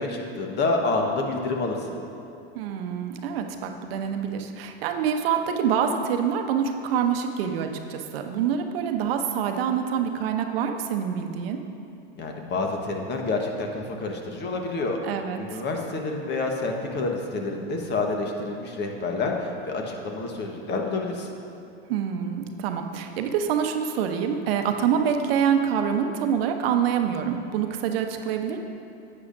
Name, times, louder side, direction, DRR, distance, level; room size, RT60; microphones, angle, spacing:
voice 1, 0.0-2.0 12.1-15.0 15.4-21.3, left 3 dB, 35° left, 2 dB, 1.2 m, -28 dB
voice 2, 2.5-11.6 15.0-15.6 21.9-28.6, right 8 dB, 70° right, 5 dB, 0.8 m, -26 dB
10.5 x 8.6 x 2.6 m, 2.7 s
hypercardioid pair, 100°, 31 cm